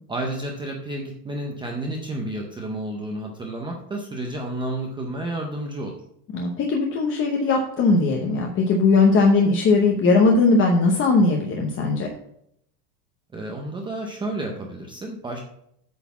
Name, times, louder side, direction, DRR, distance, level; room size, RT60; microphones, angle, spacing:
voice 1, 0.1-6.0 13.3-15.4, right 1 dB, 10° right, 1 dB, 0.5 m, -31 dB
voice 2, 6.3-12.1, left 3 dB, 25° left, 1 dB, 0.8 m, -19 dB
8.5 x 4.0 x 7.0 m, 0.73 s
supercardioid pair, 150°, 47 cm